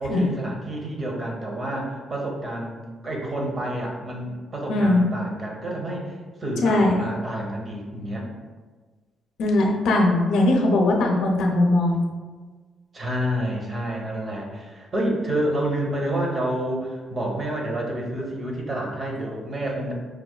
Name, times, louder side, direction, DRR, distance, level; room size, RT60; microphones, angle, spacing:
voice 1, 0.0-8.3 12.9-19.9, right 1 dB, 40° right, 0 dB, 0.8 m, -29 dB
voice 2, 4.7-5.0 6.6-7.0 9.4-12.0, left 2 dB, 80° left, 1 dB, 0.5 m, -20 dB
4.8 x 2.3 x 2.2 m, 1.4 s
cardioid pair, 90°, 0 cm